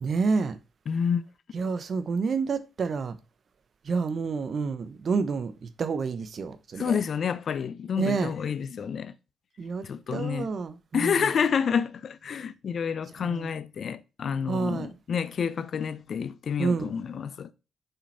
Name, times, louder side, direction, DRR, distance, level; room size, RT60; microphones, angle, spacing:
voice 1, 0.0-0.6 1.5-3.2 3.8-7.0 7.9-8.3 9.6-9.9 10.1-11.3 13.2-13.5 14.5-14.9 16.6-16.9, right 5 dB, 55° right, 0.9 m, -29 dB
voice 2, 0.9-1.2 6.8-9.1 9.8-10.5 10.9-17.5, left 7 dB, 60° left, 0.6 m, -29 dB
7.0 x 5.6 x 4.3 m
hypercardioid pair, 50°, 0 cm